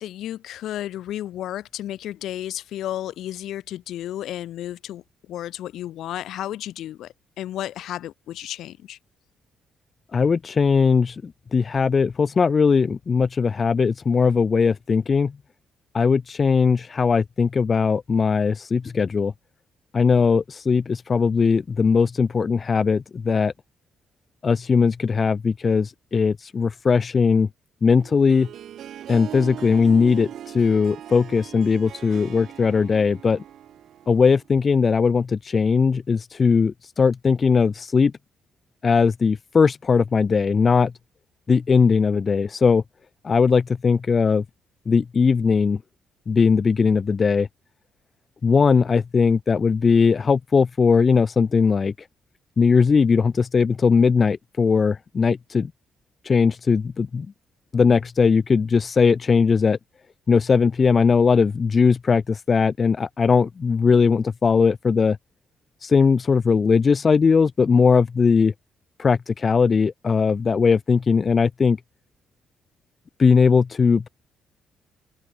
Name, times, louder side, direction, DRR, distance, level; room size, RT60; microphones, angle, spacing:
voice 1, 0.0-9.0, left 12 dB, 80° left, 3.1 m, -33 dB
voice 2, 10.1-15.3 15.9-19.3 19.9-23.5 24.4-27.5 27.8-28.5 29.1-33.4 34.1-38.1 38.8-40.9 41.5-42.8 43.2-44.4 44.9-45.8 46.3-47.5 48.4-51.9 52.6-55.7 56.2-57.3 57.7-59.8 60.3-65.2 65.8-68.5 69.0-71.8 73.2-74.1, left 5 dB, 40° left, 0.5 m, -19 dB
Harp, 28.0-34.5, right 10 dB, 70° right, 1.6 m, -39 dB
open air
cardioid pair, 90°, 0 cm